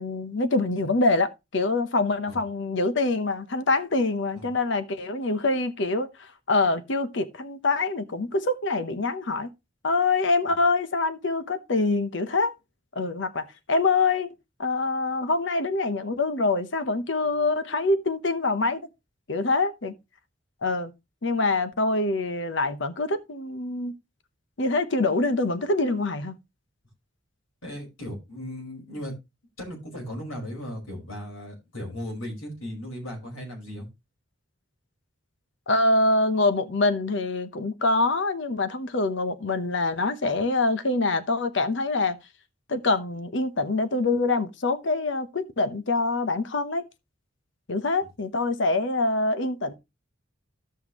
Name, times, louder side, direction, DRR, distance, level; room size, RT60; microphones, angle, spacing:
voice 1, 0.0-9.5 9.8-12.5 12.9-14.3 14.6-18.9 19.3-19.9 20.6-20.9 21.2-23.9 24.6-26.3 35.7-42.2 42.7-46.8 47.7-49.7, left 3 dB, 60° left, 0.9 m, -25 dB
voice 2, 27.6-29.1 29.6-33.9, equal, 80° left, 5.0 m, -36 dB
15.0 x 5.7 x 3.0 m
head